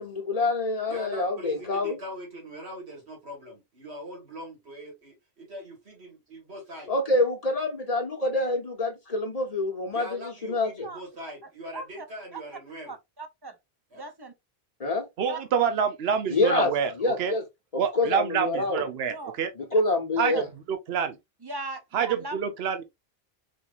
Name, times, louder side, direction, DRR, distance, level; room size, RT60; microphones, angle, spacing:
voice 1, 0.0-2.0 6.9-10.1 10.4-10.9 14.8-15.1 16.3-17.4 17.7-18.8 19.6-20.5, left 2 dB, 40° left, 1.0 m, -26 dB
voice 2, 0.9-6.9 9.9-12.9 13.9-14.1, equal, 90° right, 2.1 m, -42 dB
voice 3, 11.7-12.0 12.3-12.4 12.9-13.6 13.9-14.3 15.3-15.4 19.1-19.4 19.7-19.8 20.3-20.4 21.4-22.4, right 3 dB, 30° right, 0.5 m, -38 dB
voice 4, 15.2-17.4 17.8-19.5 20.2-21.2 21.9-22.8, right 7 dB, 75° right, 1.0 m, -27 dB
4.4 x 3.1 x 2.4 m
omnidirectional pair, 1.1 m